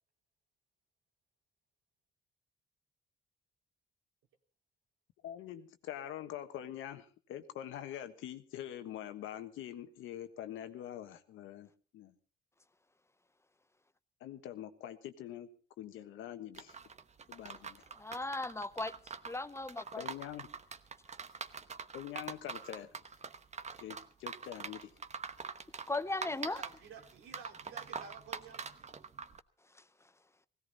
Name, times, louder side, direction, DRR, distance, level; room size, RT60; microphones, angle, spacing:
voice 1, 5.2-12.1 14.2-15.5 15.8-16.8 17.3-17.9 20.0-20.5 21.9-22.9 23.8-24.9, left 11 dB, 90° left, 1.3 m, -44 dB
sound 1, 16.5-29.4, right 5 dB, 35° right, 1.0 m, -44 dB
voice 2, 18.0-18.9 19.3-20.1 25.9-26.6, left 2 dB, 15° left, 0.7 m, -37 dB
voice 3, 26.2-28.6, right 6 dB, 85° right, 3.0 m, -51 dB
17.0 x 16.5 x 4.1 m
cardioid pair, 90°, 20 cm